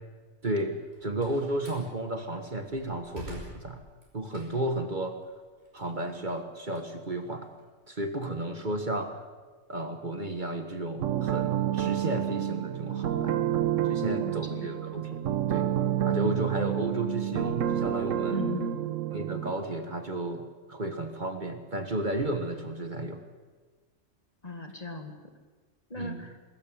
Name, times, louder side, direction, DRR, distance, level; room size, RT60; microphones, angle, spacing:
voice 1, 0.4-3.8 4.1-5.2 5.7-7.5 7.9-9.1 9.7-13.4 13.9-15.2 15.5-15.7 16.0-18.4 19.1-23.2 26.0-26.2, right 1 dB, 40° right, 6 dB, 1.5 m, -33 dB
Slam, 0.8-1.9 2.4-4.8 5.2-7.6, equal, 55° right, 5.6 m, -47 dB
sound 1, 11.0-19.5, right 11 dB, 85° right, 1.2 m, -29 dB
voice 2, 13.8-14.7 18.3-18.8 24.4-25.1 25.9-26.4, left 1 dB, 30° left, 5 dB, 2.0 m, -37 dB
21.5 x 13.5 x 9.1 m, 1.4 s
omnidirectional pair, 1.3 m